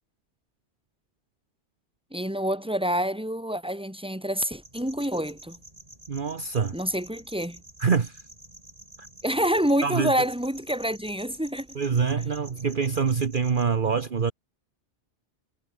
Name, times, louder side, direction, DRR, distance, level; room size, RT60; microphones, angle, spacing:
voice 1, 2.1-5.6 6.7-7.6 9.2-11.8, equal, 5° right, 3.6 m, -27 dB
sound 1, 4.6-13.7, right 1 dB, 35° right, 4.5 m, -49 dB
voice 2, 6.1-6.8 7.8-8.2 9.0-9.1 9.8-10.1 11.7-14.3, right 6 dB, 50° right, 1.2 m, -25 dB
omnidirectional pair, 1.2 m